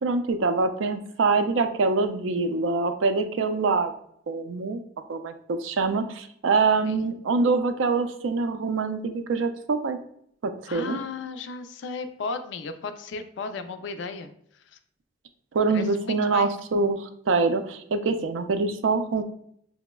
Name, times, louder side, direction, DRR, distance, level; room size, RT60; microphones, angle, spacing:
voice 1, 0.0-3.9 4.3-4.8 5.1-10.0 10.4-11.0 15.5-19.2, right 4 dB, 80° right, 8 dB, 0.4 m, -25 dB
voice 2, 10.7-14.3 15.7-16.5, left 4 dB, 70° left, 9 dB, 0.4 m, -35 dB
5.8 x 2.0 x 2.2 m, 0.67 s
head